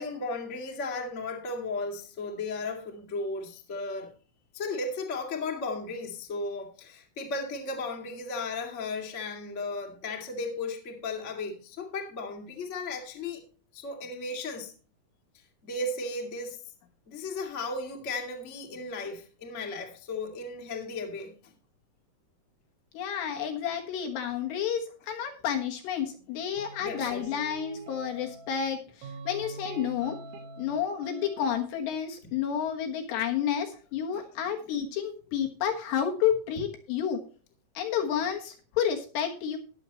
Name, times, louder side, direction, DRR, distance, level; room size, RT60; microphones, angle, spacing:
voice 1, 0.0-4.1 4.5-13.4 13.7-14.7 15.6-16.6 17.1-21.5 26.8-27.3 34.1-34.4, left 3 dB, 30° left, 1 dB, 1.2 m, -35 dB
voice 2, 22.9-30.2 30.6-37.2 37.7-39.6, left 8 dB, 70° left, 3 dB, 3.2 m, -30 dB
sound 1, 26.6-28.6 29.0-30.8 31.0-31.7, right 4 dB, 85° right, 4.4 m, -44 dB
19.5 x 7.0 x 3.0 m, 0.37 s
omnidirectional pair, 5.7 m